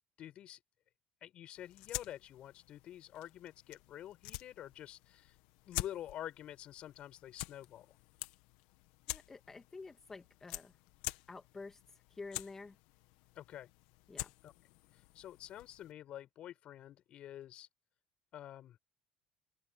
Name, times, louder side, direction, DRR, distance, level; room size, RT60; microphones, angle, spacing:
voice 1, 0.2-0.6 1.2-5.4 5.6-8.0 13.3-13.7 14.4-14.5 14.9-17.7 18.3-18.8, left 12 dB, 60° left, 6.6 m, -48 dB
sound 1, 1.5-15.9, left 19 dB, 85° left, 1.7 m, -48 dB
voice 2, 9.1-10.8 11.3-11.8 12.1-12.8 14.1-14.3, left 3 dB, 20° left, 1.8 m, -49 dB
cardioid pair, 105°, 2 cm